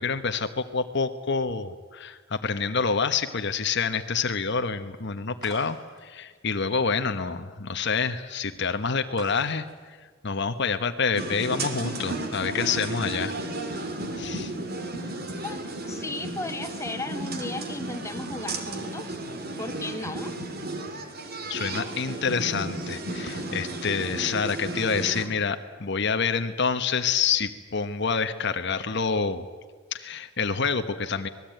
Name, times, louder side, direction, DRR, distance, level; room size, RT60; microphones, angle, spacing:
voice 1, 0.0-10.0 10.2-13.3 14.2-14.5 21.5-29.5 29.9-31.3, left 5 dB, 60° left, 8 dB, 1.1 m, -27 dB
sound 1, 5.4-11.0, equal, 20° right, 5.3 m, -49 dB
sound 2, 11.2-25.3, right 2 dB, 50° right, 3.0 m, -34 dB
voice 2, 15.4-19.2 19.6-20.3, left 2 dB, 15° left, 5 dB, 1.8 m, -35 dB
25.5 x 20.0 x 9.1 m, 1.5 s
head